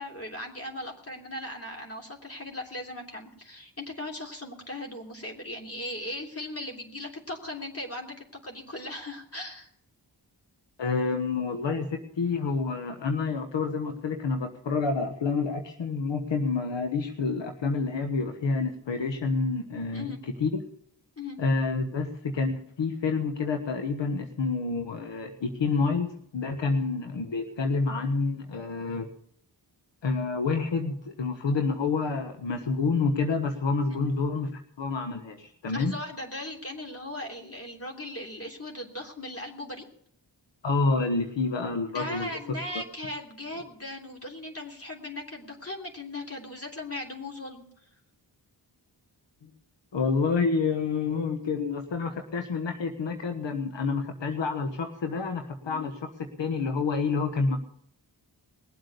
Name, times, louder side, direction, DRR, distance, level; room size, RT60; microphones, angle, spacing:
voice 1, 0.0-9.7 19.9-20.2 21.2-21.4 33.9-34.1 35.7-39.9 41.9-47.6 55.6-55.9, left 1 dB, 30° left, 1 dB, 3.2 m, -38 dB
voice 2, 10.8-20.5 21.4-29.1 30.0-34.5 34.8-35.9 40.6-42.3 49.4-49.5 49.9-56.1 56.4-57.6, left 4 dB, 85° left, 5 dB, 1.3 m, -28 dB
20.5 x 7.9 x 6.8 m, 0.66 s
cardioid pair, 55°, 43 cm